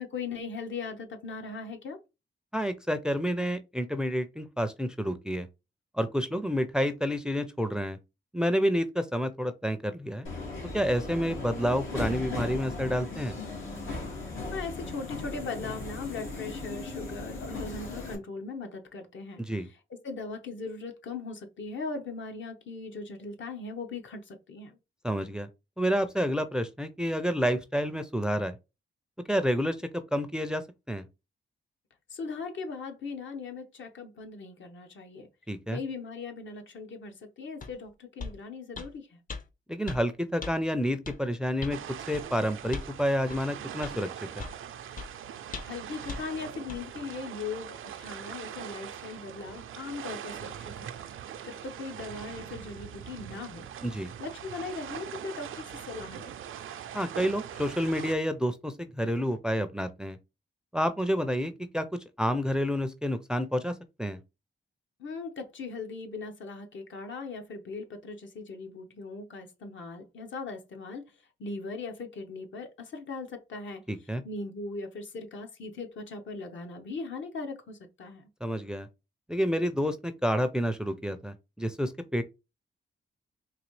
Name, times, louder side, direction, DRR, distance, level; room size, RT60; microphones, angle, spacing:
voice 1, 0.0-2.0 14.5-19.4 19.7-24.8 32.1-35.3 35.7-39.2 45.6-50.9 51.4-53.7 54.2-56.3 65.0-71.1 71.4-73.8 74.2-78.2, left 4 dB, 70° left, 0.9 m, -39 dB
voice 2, 2.5-5.5 5.9-8.0 8.3-10.3 10.7-13.4 19.4-19.7 25.0-25.5 25.8-28.5 29.3-29.8 30.1-31.0 35.5-35.8 39.7-41.8 42.1-44.1 44.3-44.4 53.8-54.1 56.9-60.2 60.7-61.9 62.2-63.7 64.0-64.2 73.9-74.2 78.4-78.9 79.3-82.2, equal, 5° right, 0.4 m, -29 dB
Subway metro underground, 10.2-18.1, left 3 dB, 90° left, 1.8 m, -37 dB
sound 1, 37.6-37.7 38.2-38.4 38.8-38.9 39.3-39.4 39.9-40.0 40.4-40.5 41.1-41.2 41.6-41.8 42.1-42.3 42.7-42.9 43.3-43.4 43.8-44.0 44.4-44.6 45.0-45.1 45.5-45.8 46.1-46.2 46.7-46.8, left 4 dB, 40° left, 0.6 m, -38 dB
sound 2, 41.7-58.2, right 9 dB, 85° right, 0.4 m, -42 dB
4.0 x 2.8 x 3.1 m
cardioid pair, 95°, 20 cm